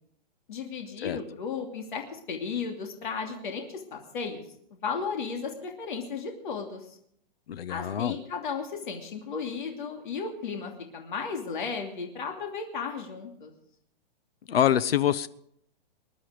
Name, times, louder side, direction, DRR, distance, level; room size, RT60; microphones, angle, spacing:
voice 1, 0.5-4.4 4.7-7.0 7.7-13.5, left 5 dB, 55° left, 2.8 m, -35 dB
voice 2, 7.5-8.2 14.5-15.3, left 10 dB, 80° left, 1.0 m, -25 dB
21.5 x 11.0 x 5.0 m
hypercardioid pair, 175°, 29 cm